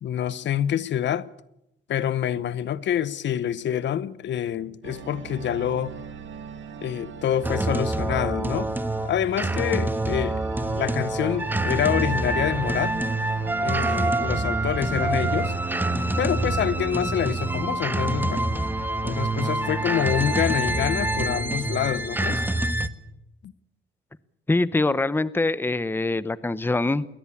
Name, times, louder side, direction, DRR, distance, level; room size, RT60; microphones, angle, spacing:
voice 1, 0.0-1.3 1.9-5.9 6.8-8.7 9.0-10.4 10.7-13.0 13.6-15.5 16.2-18.5 19.0-22.4 23.4-23.5, left 10 dB, 65° left, 0.9 m, -27 dB
sound 1, 4.8-16.4, right 6 dB, 75° right, 4.2 m, -40 dB
sound 2, 7.4-22.9, right 2 dB, 10° right, 1.4 m, -26 dB
Mallet percussion, 13.7-15.5, right 7 dB, 45° right, 4.3 m, -36 dB
voice 2, 24.5-27.1, left 2 dB, 10° left, 0.8 m, -24 dB
22.0 x 18.0 x 8.6 m
cardioid pair, 90°, 20 cm